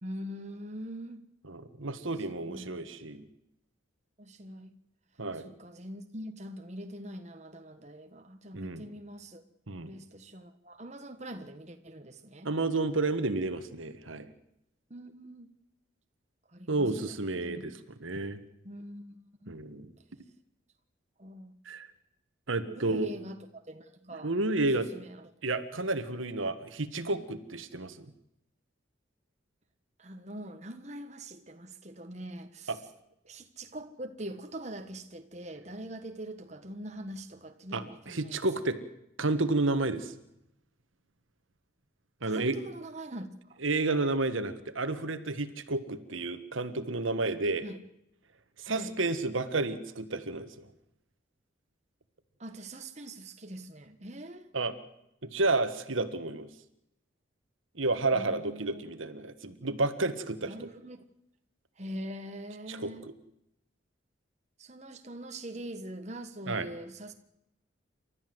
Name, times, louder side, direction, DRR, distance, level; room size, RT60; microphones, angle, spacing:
voice 1, 0.0-1.2 2.4-3.0 4.2-4.7 5.3-9.4 9.8-12.5 14.9-15.5 16.5-16.9 17.4-17.7 18.6-19.2 19.4-19.6 21.2-21.5 22.7-24.3 24.6-25.3 30.0-32.7 33.3-38.4 42.2-43.6 47.6-47.8 48.6-48.9 52.4-54.5 58.1-58.8 60.5-61.0 61.8-63.1 64.6-67.1, right 1 dB, 35° right, 1.5 m, -43 dB
voice 2, 1.5-3.3 5.2-5.5 8.5-8.8 9.7-9.9 12.4-14.3 16.7-17.7 18.0-18.4 19.5-19.9 21.6-21.9 22.5-23.1 24.2-24.9 25.4-28.1 32.7-32.8 37.7-38.8 39.2-40.1 42.2-42.6 43.6-47.6 48.6-50.7 54.5-54.7 55.2-56.5 57.7-60.7 62.7-63.1 66.5-66.7, right 2 dB, 80° right, 1.6 m, -31 dB
29.0 x 13.0 x 7.9 m
head